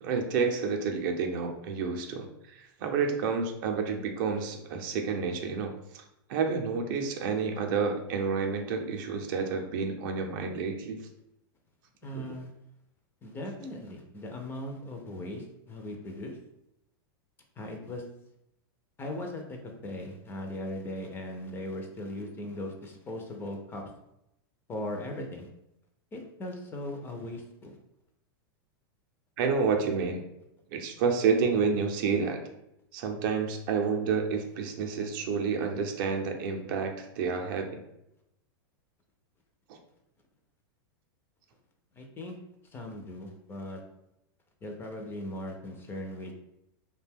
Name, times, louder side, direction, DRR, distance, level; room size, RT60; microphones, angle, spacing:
voice 1, 0.0-6.0 6.3-11.0 12.1-12.3 29.4-30.2 30.7-32.4 32.9-37.8, right 5 dB, 55° right, 3 dB, 0.5 m, -29 dB
voice 2, 12.0-12.5 13.2-16.4 17.6-18.0 19.0-23.8 24.7-25.5 26.1-27.8 42.0-42.4 42.7-43.8 44.6-46.3, left 1 dB, 20° left, 2 dB, 0.4 m, -38 dB
2.5 x 2.2 x 3.3 m, 0.84 s
supercardioid pair, 135°, 12 cm